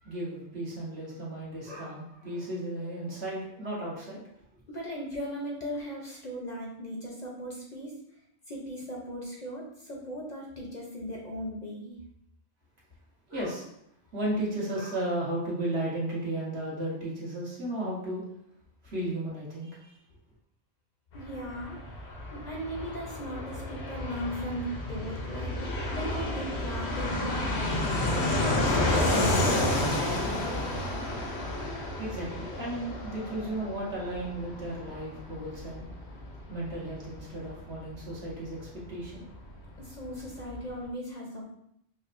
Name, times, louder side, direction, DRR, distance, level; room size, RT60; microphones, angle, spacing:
voice 1, 0.0-4.2 13.3-13.7 14.1-18.2 18.8-20.0 31.8-35.8 36.5-39.2, right 1 dB, 70° right, -6 dB, 1.5 m, -34 dB
voice 2, 4.7-7.9 8.5-12.0 21.1-21.8 22.1-27.2 27.8-29.6 39.8-41.5, equal, 45° left, -2 dB, 0.7 m, -38 dB
Fixed-wing aircraft airplane, 21.1-39.5 39.8-39.9 40.1-40.8, left 1 dB, 70° left, 1.0 m, -31 dB
5.0 x 2.2 x 2.5 m, 0.74 s
omnidirectional pair, 1.1 m